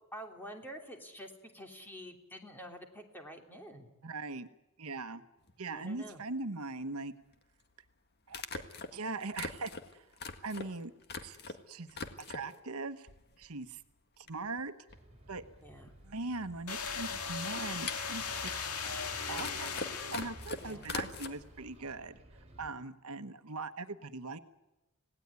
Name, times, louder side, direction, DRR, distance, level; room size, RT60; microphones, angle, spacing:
voice 1, 0.1-3.9 5.7-6.2 15.6-15.9 20.6-20.9, equal, 10° left, 3 dB, 3.0 m, -48 dB
voice 2, 4.0-4.5 4.8-5.2 5.6-7.1 8.3-10.1 10.4-10.9 11.2-11.4 11.7-11.9 12.3-13.1 13.4-13.8 14.2-14.7 15.3-15.4 16.0-18.5 19.3-22.2 22.6-24.4, right 3 dB, 75° right, 9 dB, 1.2 m, -40 dB
sound 1, 5.5-5.6 7.3-7.4 8.3-11.6 11.9-12.6 13.1-13.7 14.0-14.1 14.3-21.3, left 4 dB, 50° left, 1.8 m, -43 dB
Bus, 14.9-22.7, right 1 dB, 30° right, 4.3 m, -54 dB
sound 2, 16.7-20.7, left 6 dB, 90° left, 2.0 m, -38 dB
26.5 x 18.0 x 9.6 m, 1.0 s
head